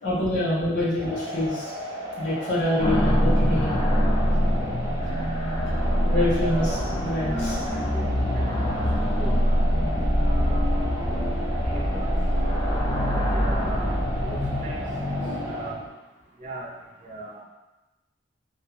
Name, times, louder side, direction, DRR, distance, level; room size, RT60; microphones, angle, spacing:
voice 1, 0.0-1.7 2.2-3.7 6.0-6.7 7.0-7.5, left 1 dB, 70° left, -8 dB, 1.2 m, -25 dB
sound 1, 1.0-15.7, equal, 15° right, 0.9 m, -35 dB
sound 2, 2.8-15.9, equal, 35° left, 0.5 m, -24 dB
voice 2, 6.1-6.7 7.3-9.6 10.2-12.2 13.1-13.9 14.2-14.8 15.4-15.8 16.4-16.7 17.0-17.4, right 2 dB, 45° right, -3 dB, 0.5 m, -39 dB
2.9 x 2.6 x 2.3 m, 1.1 s
head